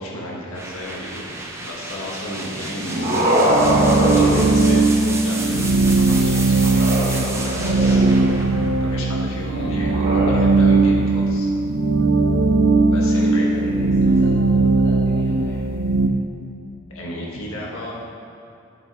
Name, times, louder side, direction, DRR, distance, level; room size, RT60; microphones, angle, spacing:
voice 1, 0.0-1.4 1.6-3.5 3.9-8.0 8.8-11.5 12.9-13.5 16.9-17.9, left 1 dB, 85° left, -4 dB, 1.6 m, -33 dB
sound 1, 0.5-10.3, right 2 dB, 15° right, 0.7 m, -33 dB
sound 2, 2.5-5.2 6.7-8.4 9.8-10.3, equal, 45° right, 1.8 m, -22 dB
sound 3, 3.5-16.1, right 3 dB, 65° right, 0.5 m, -18 dB
voice 2, 9.4-9.9 12.9-15.6, left 1 dB, 55° left, -6 dB, 1.1 m, -37 dB
11.5 x 7.8 x 3.0 m, 2.5 s
head